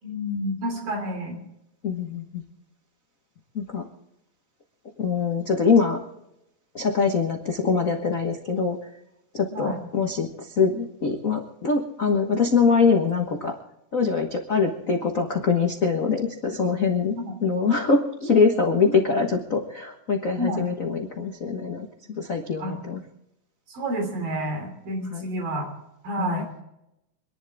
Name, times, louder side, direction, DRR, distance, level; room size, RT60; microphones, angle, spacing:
voice 1, 0.0-1.4 9.5-9.8 17.1-17.3 20.4-20.7 22.6-22.8 23.7-25.7 26.0-26.5, equal, 90° right, 3 dB, 4.8 m, -29 dB
voice 2, 1.8-2.4 3.5-3.8 5.0-6.0 6.7-8.8 9.3-13.5 13.9-17.2 17.4-23.0 25.1-25.2 26.2-26.4, left 5 dB, 70° left, 2 dB, 0.7 m, -23 dB
26.5 x 11.0 x 3.5 m, 0.86 s
omnidirectional pair, 3.8 m